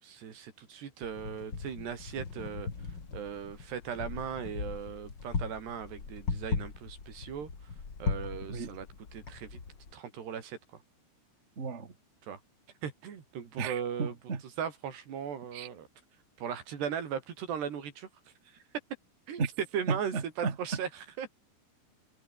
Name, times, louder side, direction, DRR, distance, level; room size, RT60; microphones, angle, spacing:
voice 1, 0.0-2.7 3.1-7.5 8.0-8.9 9.1-9.6 9.9-10.8 12.2-12.4 12.8-15.9 16.4-18.1 18.5-18.6 19.3-19.4 19.7-21.4, right 8 dB, 65° right, 5.4 m, -38 dB
Wind, 1.0-9.9, left 5 dB, 30° left, 2.6 m, -38 dB
voice 2, 11.6-11.9 13.6-14.4 15.5-15.7 19.4-19.5 19.9-20.5, right 5 dB, 80° right, 0.6 m, -34 dB
omnidirectional pair, 5.4 m